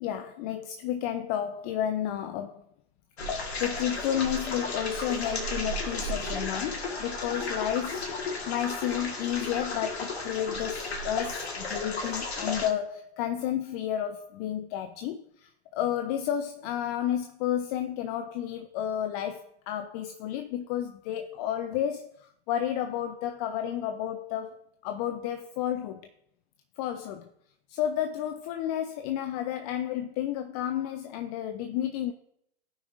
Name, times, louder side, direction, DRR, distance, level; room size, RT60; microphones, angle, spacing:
voice 1, 0.0-2.6 3.6-26.1 26.8-27.3 27.7-32.1, left 10 dB, 40° left, 0.5 m, -31 dB
sound 1, 3.2-12.7, left 2 dB, 80° left, 1.8 m, -34 dB
16.5 x 5.9 x 2.6 m
hypercardioid pair, 105°, 32 cm